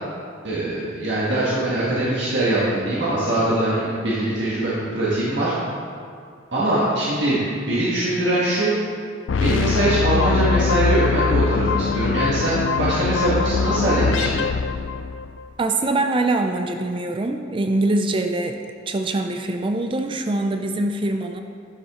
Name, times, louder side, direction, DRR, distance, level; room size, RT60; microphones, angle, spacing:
voice 1, 0.4-5.5 6.5-8.7 9.4-14.4, right 1 dB, 65° right, -8 dB, 1.7 m, -22 dB
sound 1, 9.3-15.4, left 5 dB, 75° left, 0.4 m, -22 dB
voice 2, 15.6-21.4, right 2 dB, 25° right, 6 dB, 0.4 m, -23 dB
11.0 x 7.4 x 3.7 m, 2.3 s
head